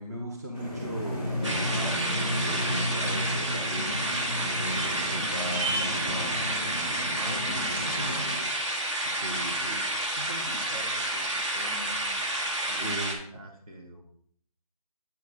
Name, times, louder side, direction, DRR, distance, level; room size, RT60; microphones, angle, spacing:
voice 1, 0.0-2.1 2.5-4.1 4.4-6.5 9.0-9.8 12.7-13.2, equal, 25° right, -1 dB, 0.7 m, -37 dB
sound 1, 0.5-8.3, equal, 85° right, 3.5 m, -33 dB
sound 2, 1.4-13.2, right 1 dB, 50° right, 1.5 m, -30 dB
voice 2, 7.2-8.5 9.3-12.4 12.7-13.0 13.3-14.0, equal, 65° right, 0 dB, 2.2 m, -42 dB
8.2 x 4.9 x 4.0 m, 0.63 s
figure-of-eight pair, 165°, 20 cm